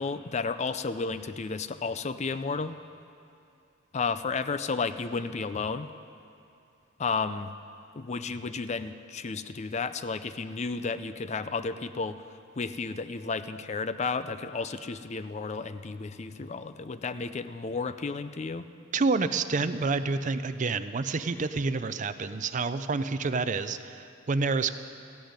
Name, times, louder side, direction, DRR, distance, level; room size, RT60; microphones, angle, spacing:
voice 1, 0.0-2.7 3.9-5.9 7.0-7.5 7.9-12.2 12.6-18.6, left 4 dB, 35° left, 12 dB, 0.4 m, -32 dB
voice 2, 18.9-24.8, right 4 dB, 40° right, 12 dB, 0.5 m, -28 dB
14.5 x 10.0 x 9.6 m, 2.5 s
head